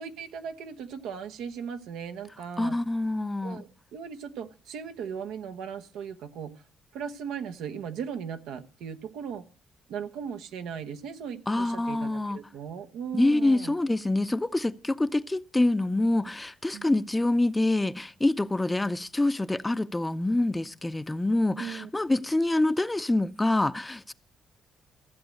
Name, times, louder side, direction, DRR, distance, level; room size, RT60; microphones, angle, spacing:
voice 1, 0.0-2.8 3.4-6.6 6.9-9.4 9.9-13.8 16.7-16.8 21.6-21.9, right 7 dB, 90° right, 1.1 m, -38 dB
voice 2, 2.6-3.6 11.5-12.4 13.1-24.1, left 2 dB, 15° left, 0.6 m, -26 dB
14.5 x 7.8 x 6.3 m
cardioid pair, 90°, 0 cm